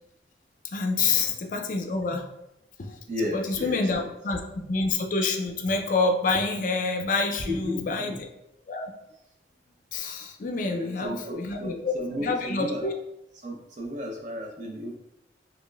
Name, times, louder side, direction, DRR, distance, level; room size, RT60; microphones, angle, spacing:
voice 1, 0.7-2.3 2.8-8.3 8.7-8.9 9.9-11.9 12.2-12.9, left 3 dB, 45° left, 4 dB, 0.4 m, -27 dB
voice 2, 3.1-4.1 7.4-8.2 10.6-12.9 13.4-15.0, left 1 dB, 45° right, 0 dB, 0.6 m, -34 dB
5.1 x 2.4 x 2.3 m, 0.84 s
head